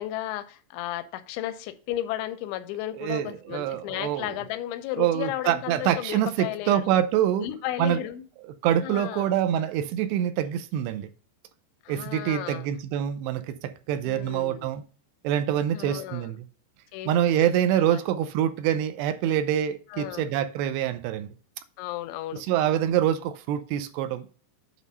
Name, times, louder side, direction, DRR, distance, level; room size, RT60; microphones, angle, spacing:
voice 1, 0.0-7.0 7.4-8.2 8.8-9.3 11.8-12.7 14.1-14.7 15.7-16.3 16.9-18.0 19.9-20.3 21.8-22.5, left 13 dB, 90° left, 3.1 m, -34 dB
voice 2, 3.0-4.4 5.0-7.5 7.8-8.0 8.6-11.1 11.9-14.8 15.2-16.4 17.1-21.3 22.5-24.3, right 10 dB, 80° right, 2.6 m, -25 dB
8.4 x 3.7 x 5.3 m
omnidirectional pair, 5.1 m